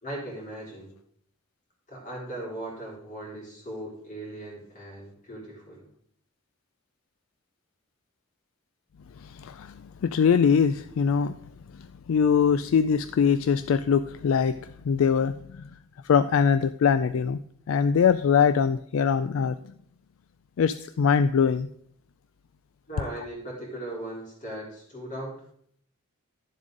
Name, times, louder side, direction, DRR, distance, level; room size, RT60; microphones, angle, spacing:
voice 1, 0.0-0.9 1.9-5.8 22.9-25.4, right 1 dB, 35° left, -2 dB, 3.5 m, -38 dB
voice 2, 9.2-9.7 10.0-11.4 12.1-15.6 16.0-17.4 17.7-19.6 20.6-21.7, left 6 dB, 65° left, 13 dB, 0.3 m, -22 dB
11.5 x 7.3 x 3.8 m, 0.66 s
head